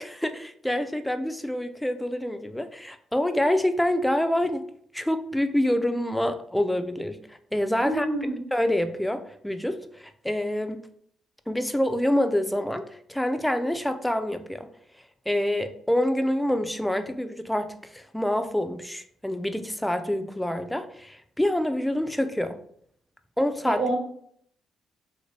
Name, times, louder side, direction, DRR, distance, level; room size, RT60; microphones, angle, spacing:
voice 1, 0.0-4.6 4.9-8.1 8.5-10.9 11.5-14.7 15.3-22.6 23.4-23.8, left 1 dB, 5° left, 8 dB, 0.3 m, -26 dB
voice 2, 7.8-8.4 23.6-24.0, right 2 dB, 70° right, 1 dB, 1.0 m, -27 dB
3.2 x 2.6 x 3.2 m, 0.65 s
cardioid pair, 90°, 0 cm